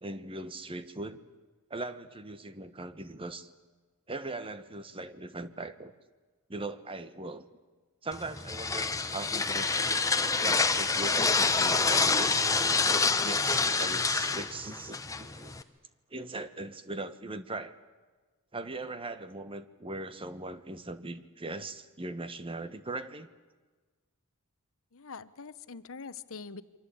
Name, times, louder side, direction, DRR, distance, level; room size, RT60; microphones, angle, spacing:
voice 1, 0.0-1.2 1.7-3.5 4.1-5.9 6.5-7.4 8.0-9.8 10.4-12.5 13.1-15.6 16.1-17.7 18.5-23.3, right 2 dB, 25° right, 12 dB, 1.3 m, -40 dB
sound 1, 8.1-15.6, left 4 dB, 15° left, 1.3 m, -27 dB
voice 2, 24.9-26.6, left 5 dB, 65° left, 14 dB, 1.0 m, -43 dB
28.5 x 24.0 x 8.6 m, 1.3 s
head